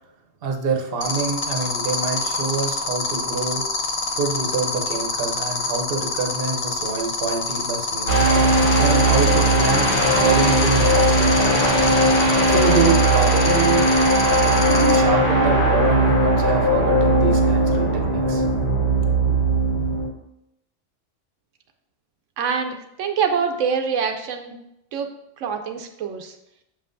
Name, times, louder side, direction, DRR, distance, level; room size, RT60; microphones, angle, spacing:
voice 1, 0.4-3.6 4.1-8.1 8.8-12.0 12.5-13.9 14.7-18.5, right 5 dB, 55° right, 3 dB, 1.0 m, -26 dB
sound 1, 1.0-15.0, left 4 dB, 35° left, 0.7 m, -26 dB
sound 2, 8.1-20.1, right 1 dB, 60° left, 1.8 m, -18 dB
voice 2, 22.4-24.6 24.9-25.1 25.4-26.4, right 6 dB, 90° right, 4 dB, 1.0 m, -25 dB
6.9 x 5.5 x 2.6 m, 0.83 s
omnidirectional pair, 1.3 m